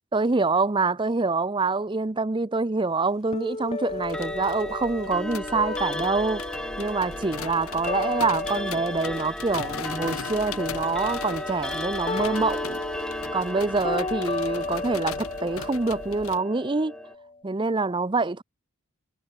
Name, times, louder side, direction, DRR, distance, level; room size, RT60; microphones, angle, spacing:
voice 1, 0.1-12.8 13.3-16.9 17.4-18.4, right 3 dB, 20° right, 0.6 m, -26 dB
sound 1, 3.3-9.3 9.6-17.3, left 3 dB, 25° left, 1.0 m, -34 dB
sound 2, 3.9-16.4, left 5 dB, 75° left, 1.4 m, -40 dB
Clock, 4.0-17.1, left 1 dB, 5° left, 0.9 m, -36 dB
head